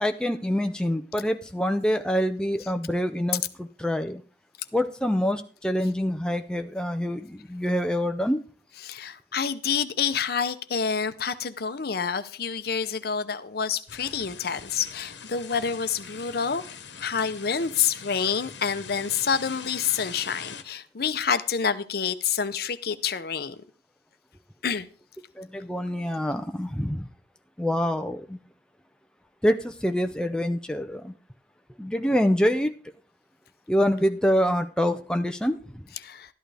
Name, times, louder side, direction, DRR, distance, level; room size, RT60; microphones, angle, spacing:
voice 1, 0.0-4.2 4.7-8.4 25.4-27.1 27.6-28.4 29.4-31.1 31.8-32.7 33.7-35.8, equal, 5° left, 0.5 m, -26 dB
voice 2, 8.8-16.6 17.0-23.6 24.6-24.9 36.0-36.3, left 6 dB, 55° left, 0.7 m, -28 dB
sound 1, 13.9-20.6, left 6 dB, 75° left, 1.2 m, -42 dB
12.5 x 11.0 x 3.4 m
head